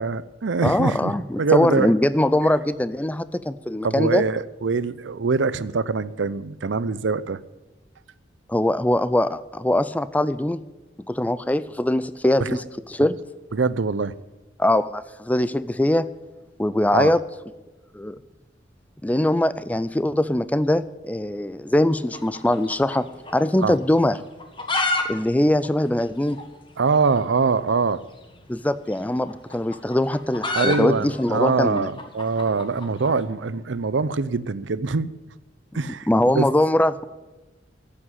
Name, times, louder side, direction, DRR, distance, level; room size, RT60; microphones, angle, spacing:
voice 1, 0.0-1.9 3.8-7.4 12.4-12.6 13.5-14.1 16.9-17.1 23.6-23.8 26.8-28.0 30.5-35.1 35.7-36.1 36.3-36.5, right 4 dB, 80° right, 17 dB, 0.6 m, -23 dB
voice 2, 0.6-4.2 8.5-10.6 11.1-12.6 12.9-13.2 14.6-16.1 16.6-17.2 17.9-18.2 19.0-23.0 23.3-24.2 25.1-26.4 28.5-31.9 36.1-37.1, left 1 dB, 10° left, 15 dB, 0.4 m, -22 dB
sound 1, 22.1-23.4 23.7-23.8 24.3-25.0 25.3-25.4 25.6-25.7 26.3-26.4 27.6-27.8 28.9-33.1, left 2 dB, 25° left, 1.6 m, -28 dB
12.5 x 8.8 x 9.8 m, 1.1 s
head